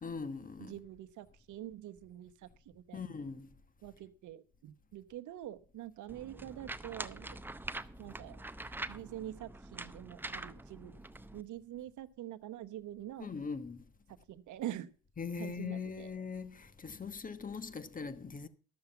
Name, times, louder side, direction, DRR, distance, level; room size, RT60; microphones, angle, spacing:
voice 1, 0.0-0.8 2.9-3.5 13.2-13.8 15.2-18.5, left 5 dB, 25° left, 1.2 m, -41 dB
voice 2, 0.6-3.0 3.8-7.4 8.0-8.4 8.9-10.9 11.3-13.3 14.3-14.9 15.4-16.1, right 13 dB, 55° right, 1.0 m, -45 dB
sound 1, 6.1-11.4, right 2 dB, 5° right, 0.6 m, -44 dB
12.5 x 7.0 x 6.9 m
supercardioid pair, 85°, 35 cm